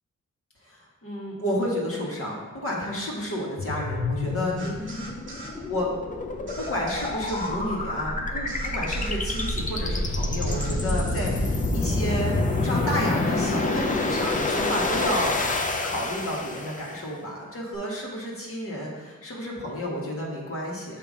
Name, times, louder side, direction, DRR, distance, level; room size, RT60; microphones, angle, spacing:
voice 1, 0.6-5.1 5.6-5.9 6.6-15.4 15.8-21.0, equal, 45° left, -4 dB, 1.5 m, -31 dB
sound 1, 3.6-17.0, left 2 dB, 25° left, 0.5 m, -27 dB
sound 2, 4.6-5.6 6.5-7.6 8.5-9.6 10.5-10.8, right 2 dB, 40° right, 1.1 m, -41 dB
6.9 x 2.8 x 5.0 m, 1.3 s
wide cardioid pair, 100°, 31 cm